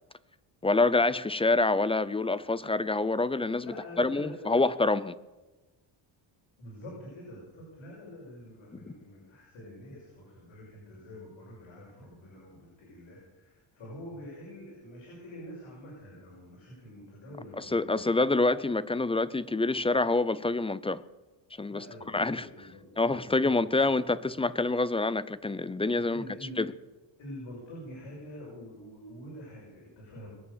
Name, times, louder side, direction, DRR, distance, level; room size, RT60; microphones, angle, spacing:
voice 1, 0.6-3.7 4.0-5.1 8.9-9.0 17.6-21.0 21.6-21.8 22.1-22.5 23.0-26.2 26.6-26.7, left 3 dB, 10° left, 0.5 m, -26 dB
voice 2, 3.6-4.7 6.6-18.1 21.7-23.9 25.9-26.7 27.2-30.3, left 1 dB, 70° left, 6.4 m, -46 dB
22.0 x 9.0 x 6.8 m
cardioid pair, 105°, 48 cm